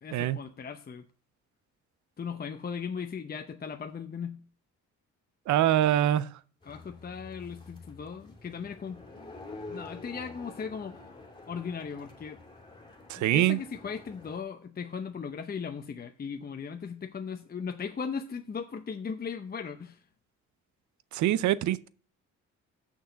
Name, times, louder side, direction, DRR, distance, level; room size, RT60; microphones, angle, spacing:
voice 1, 0.0-1.0 2.2-4.4 6.6-9.0 9.7-11.1 11.5-12.4 13.2-20.0, left 6 dB, 30° left, 0.8 m, -38 dB
voice 2, 5.5-6.3 13.1-13.6 21.1-21.9, right 12 dB, 75° right, 0.6 m, -24 dB
sound 1, 6.6-14.4, left 3 dB, 15° left, 2.7 m, -48 dB
6.4 x 6.3 x 7.0 m
cardioid pair, 90°, 30 cm